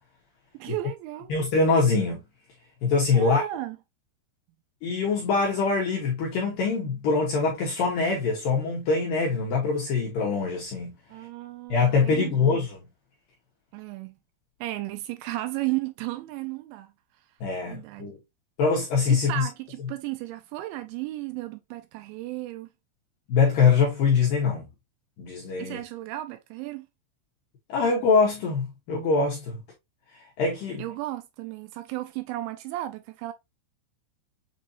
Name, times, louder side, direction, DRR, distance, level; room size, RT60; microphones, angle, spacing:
voice 1, 0.5-1.3 3.1-3.8 11.1-12.5 13.7-14.1 14.6-16.9 17.6-18.1 19.1-22.7 25.6-26.9 30.8-33.3, right 16 dB, 85° right, 2.7 m, -34 dB
voice 2, 1.3-2.2 2.8-3.4 4.8-10.9 11.7-12.8 17.4-18.2 18.6-19.5 23.3-24.6 25.2-25.8 27.7-29.6 30.4-30.8, left 4 dB, 75° left, 2.2 m, -23 dB
7.3 x 2.7 x 2.6 m
omnidirectional pair, 5.5 m